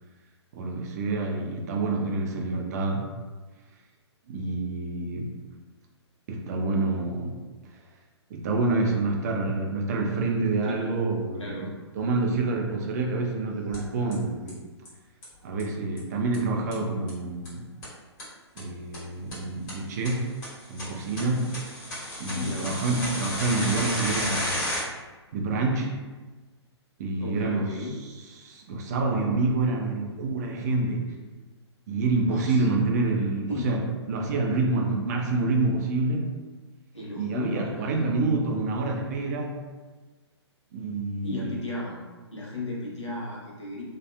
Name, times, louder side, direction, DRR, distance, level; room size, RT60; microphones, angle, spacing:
voice 1, 0.5-3.1 4.3-5.3 6.3-7.3 8.3-11.7 11.9-14.6 15.4-17.7 18.6-20.3 20.7-21.5 22.2-24.6 25.3-26.0 27.0-27.7 28.4-31.0 31.9-36.3 37.2-39.6 40.7-41.5, right 3 dB, 35° right, 1 dB, 0.4 m, -27 dB
voice 2, 10.6-10.9 11.4-11.7 22.3-22.7 27.2-28.0 32.2-32.7 33.5-33.8 36.9-38.2 41.2-42.0 42.3-43.8, left 1 dB, 85° left, -4 dB, 0.9 m, -35 dB
sound 1, 13.7-13.8 14.1-14.2 14.5-14.6 14.8-14.9 15.2-15.3 15.6-15.7 16.0-16.1 16.3-16.4 16.7-16.8 17.1-17.2 17.4-17.5 17.8-17.9 18.2-18.3 18.6-18.7 18.9-19.0 19.3-19.4 19.7-19.8 20.0-20.1 20.4-24.8, left 1 dB, 40° left, 1.3 m, -32 dB
2.7 x 2.3 x 2.2 m, 1.3 s
figure-of-eight pair, 125°, 15 cm